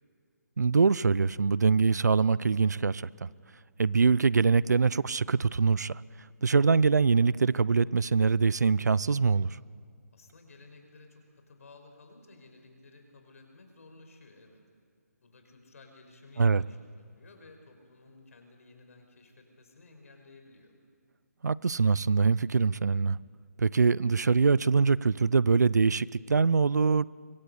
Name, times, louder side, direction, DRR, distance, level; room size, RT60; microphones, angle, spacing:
voice 1, 0.6-3.3 3.8-6.0 6.4-9.6 16.4-16.6 21.4-23.2 23.6-27.1, right 5 dB, 80° right, 21 dB, 0.6 m, -24 dB
voice 2, 10.1-14.6 15.2-20.7, left 3 dB, 55° left, 5 dB, 5.2 m, -55 dB
24.5 x 21.0 x 8.2 m, 2.2 s
hypercardioid pair, 160°, 9 cm